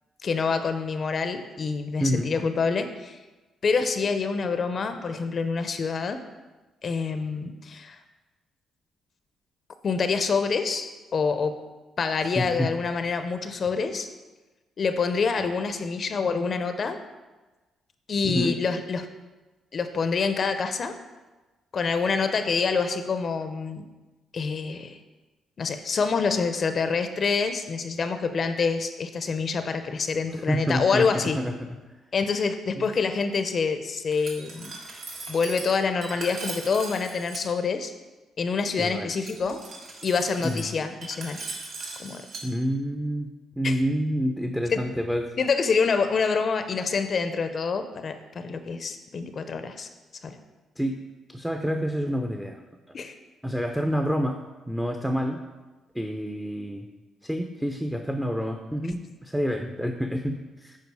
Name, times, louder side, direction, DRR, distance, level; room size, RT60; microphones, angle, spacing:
voice 1, 0.2-3.2 3.6-6.2 6.8-8.0 9.8-11.6 12.0-14.1 14.8-17.0 18.1-19.1 19.7-21.0 21.7-23.8 24.3-25.0 25.6-31.4 32.1-34.8 35.3-37.9 38.4-39.6 40.0-41.4 42.0-42.2 43.6-43.8 44.7-44.8 45.4-49.9 50.2-50.4 52.9-53.1, left 5 dB, 45° left, 9 dB, 0.6 m, -26 dB
voice 2, 12.3-12.7 18.2-18.6 30.3-31.6 32.8-32.9 38.8-39.1 40.4-40.7 42.4-45.3 50.8-51.0 51.3-52.6 53.4-55.4 55.9-56.9 57.2-60.8, equal, 5° right, 4 dB, 0.6 m, -28 dB
Glass, 34.1-37.4 39.1-42.4, right 3 dB, 65° right, 1.6 m, -39 dB
8.3 x 4.7 x 4.7 m, 1.2 s
cardioid pair, 90°, 0 cm